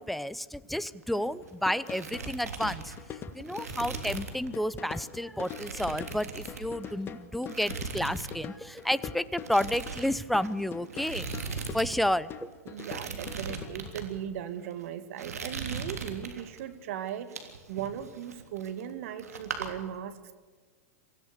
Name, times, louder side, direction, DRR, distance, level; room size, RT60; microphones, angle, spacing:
voice 1, 0.0-2.9 3.3-11.3 11.7-12.5, left 1 dB, ahead, 16 dB, 0.7 m, -31 dB
sound 1, 0.9-1.5 1.8-4.5 4.8-5.0 5.4-7.0 7.4-8.4 8.6-8.9 9.4-11.9 12.1-12.2 12.7-14.1 14.6-14.8 15.2-16.6 17.1-18.9 19.2-19.7, right 5 dB, 90° right, 3.3 m, -39 dB
sound 2, 1.4-14.1, left 8 dB, 25° left, 1.6 m, -44 dB
voice 2, 12.7-17.4 17.7-20.4, right 10 dB, 60° right, 11 dB, 2.1 m, -38 dB
25.0 x 16.0 x 6.8 m, 1.5 s
hypercardioid pair, 115°, 8 cm